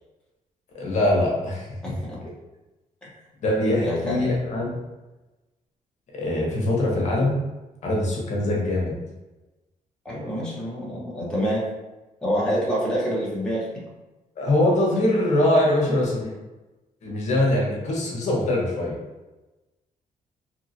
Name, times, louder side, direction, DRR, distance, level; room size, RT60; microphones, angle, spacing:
voice 1, 0.7-1.7 3.4-4.7 6.1-7.4 7.8-8.9 14.4-16.3 17.0-18.9, left 1 dB, 55° left, -3 dB, 0.8 m, -22 dB
voice 2, 1.8-2.2 3.0-3.1 3.8-4.3 10.0-11.6 12.2-13.8, equal, 5° left, -7 dB, 0.7 m, -27 dB
2.9 x 2.8 x 2.6 m, 1.1 s
cardioid pair, 155°, 14 cm